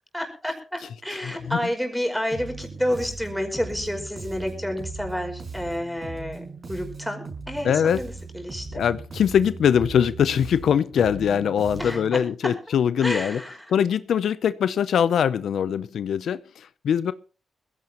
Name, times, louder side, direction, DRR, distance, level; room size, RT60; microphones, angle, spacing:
voice 1, 0.1-8.8 11.8-12.6 13.0-13.7, equal, ahead, 3 dB, 5.2 m, -30 dB
Bass guitar, 2.3-12.2, right 4 dB, 50° right, 5.3 m, -38 dB
voice 2, 7.6-8.0 8.7-13.4 13.7-17.1, left 8 dB, 85° left, 15 dB, 0.6 m, -22 dB
21.0 x 16.0 x 3.0 m, 0.35 s
cardioid pair, 90°, 0 cm